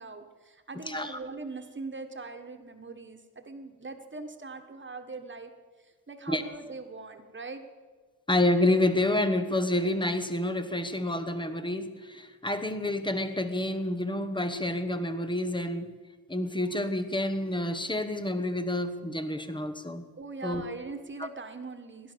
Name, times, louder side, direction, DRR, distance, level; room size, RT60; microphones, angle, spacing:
voice 1, 0.0-5.5 5.8-7.6 20.2-22.1, right 3 dB, 30° right, 7 dB, 1.5 m, -41 dB
voice 2, 0.9-1.2 6.3-6.4 8.3-15.9 16.3-20.0 20.4-20.6, left 1 dB, 10° left, 9 dB, 1.1 m, -28 dB
18.0 x 11.5 x 6.9 m, 1.4 s
wide cardioid pair, 150°, 38 cm